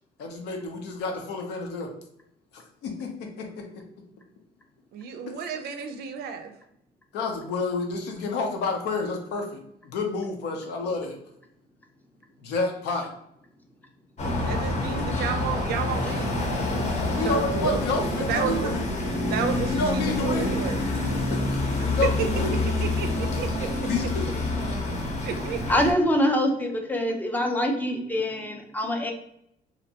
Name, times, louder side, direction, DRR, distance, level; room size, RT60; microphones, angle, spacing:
voice 1, 0.2-1.9 2.5-3.8 7.1-11.2 12.4-13.1 14.7-15.1 17.1-18.9 19.7-20.6 21.1-22.5 23.8-24.3 25.2-25.5, left 3 dB, 80° left, 2 dB, 0.6 m, -30 dB
voice 2, 4.9-6.5 14.4-16.4 17.2-18.7 19.3-20.8 21.8-22.3 22.8-23.7 25.2-25.6, right 7 dB, 70° right, 6 dB, 0.4 m, -32 dB
sound 1, 14.2-25.9, left 2 dB, 45° left, 0.8 m, -27 dB
voice 3, 25.7-29.1, equal, 10° left, 3 dB, 0.5 m, -24 dB
2.6 x 2.1 x 2.7 m, 0.75 s
cardioid pair, 110°, 17 cm